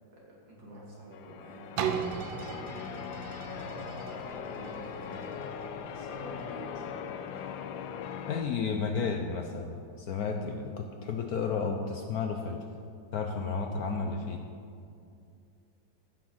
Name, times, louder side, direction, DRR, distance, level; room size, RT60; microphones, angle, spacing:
voice 1, 0.1-5.4 5.9-7.1, right 1 dB, 70° right, -4 dB, 3.3 m, -49 dB
Church bell, 1.1-8.4, left 8 dB, 85° left, 1.4 m, -40 dB
sound 1, 1.8-7.5 8.1-8.2, right 7 dB, 90° right, 1.6 m, -38 dB
voice 2, 8.2-12.6 13.1-14.4, left 5 dB, 65° left, 4 dB, 1.0 m, -32 dB
14.0 x 6.2 x 6.1 m, 2.4 s
omnidirectional pair, 2.1 m